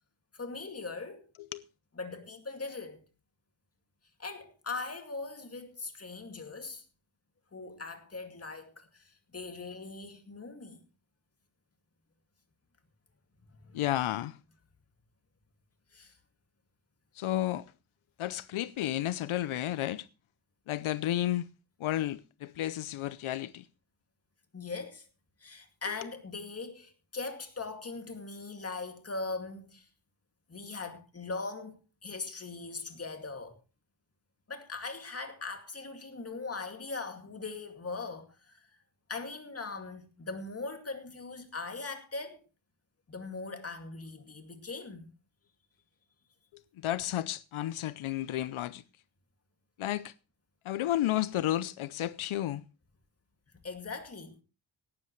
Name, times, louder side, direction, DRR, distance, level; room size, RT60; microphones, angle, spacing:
voice 1, 0.3-1.3 2.0-3.0 4.2-6.8 7.5-10.8 13.6-13.8 15.9-16.1 24.5-25.0 25.4-29.9 30.5-33.6 34.5-38.6 39.1-42.4 43.1-45.1 53.6-54.4, left 3 dB, 30° left, 2.3 m, -40 dB
voice 2, 13.7-14.4 17.2-17.6 18.2-20.1 20.7-21.4 21.8-23.6 46.8-48.8 49.8-50.1 50.6-52.6, left 13 dB, 85° left, 0.7 m, -32 dB
17.0 x 12.5 x 3.1 m
wide cardioid pair, 135°, 48 cm